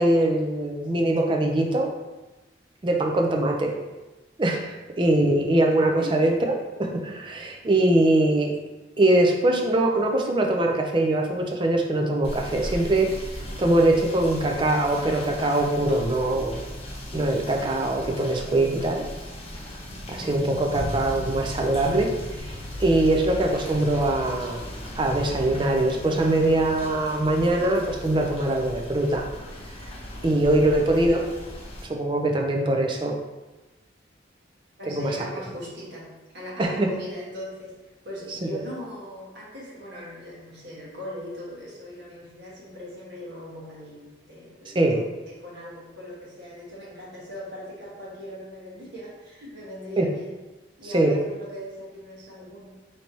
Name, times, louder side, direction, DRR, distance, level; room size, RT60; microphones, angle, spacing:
voice 1, 0.0-1.9 2.8-3.8 4.4-6.3 6.8-8.6 9.0-16.6 17.1-19.1 20.1-24.7 24.9-29.3 29.7-29.9 30.2-31.2 31.8-33.2 34.9-35.2 36.6-36.9 38.3-38.6 44.7-45.0 50.0-50.1 50.9-51.1, right 1 dB, 25° right, 1 dB, 0.4 m, -22 dB
Rain / Motor vehicle (road), 12.2-31.8, equal, 30° left, 0.7 m, -36 dB
voice 2, 34.8-50.3 50.8-52.7, equal, 65° right, -6 dB, 1.3 m, -39 dB
4.4 x 3.2 x 2.8 m, 1.1 s
head